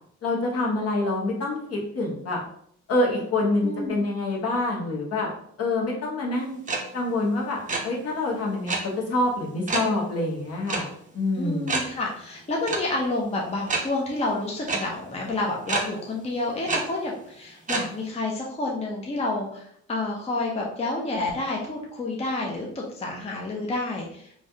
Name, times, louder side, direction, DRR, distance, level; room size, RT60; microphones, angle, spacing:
voice 1, 0.2-2.4 2.9-5.3 5.6-6.6 6.9-7.6 7.8-10.9 11.1-11.9, left 2 dB, 55° left, -2 dB, 1.0 m, -26 dB
voice 2, 3.6-4.0 11.3-24.3, left 2 dB, 20° left, -1 dB, 0.6 m, -29 dB
sound 1, 6.7-6.8 7.1-7.3 7.5-7.8 8.7-8.8 9.7-9.9 10.7-10.8 11.1-11.2 11.7-11.8 12.7-12.8 13.7-13.8 14.7-14.8 15.7-15.8 16.7-16.8 17.7-17.8, right 4 dB, 25° right, 0.6 m, -26 dB
3.1 x 2.3 x 2.7 m, 0.68 s
cardioid pair, 90°, 30 cm